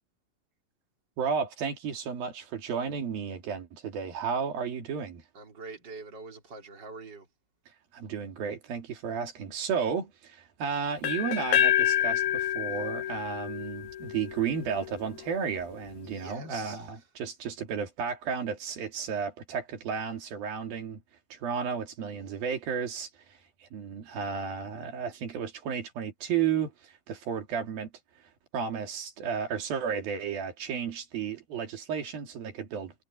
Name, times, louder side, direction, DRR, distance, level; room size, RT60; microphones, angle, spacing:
voice 1, 1.2-5.2 7.9-21.0 21.3-27.9 28.5-32.9, right 6 dB, 85° right, 4.6 m, -33 dB
voice 2, 5.3-7.3 16.0-17.0 22.1-22.5, right 3 dB, 30° right, 4.7 m, -45 dB
sound 1, 11.0-14.9, left 11 dB, 85° left, 3.2 m, -28 dB
omnidirectional pair, 4.1 m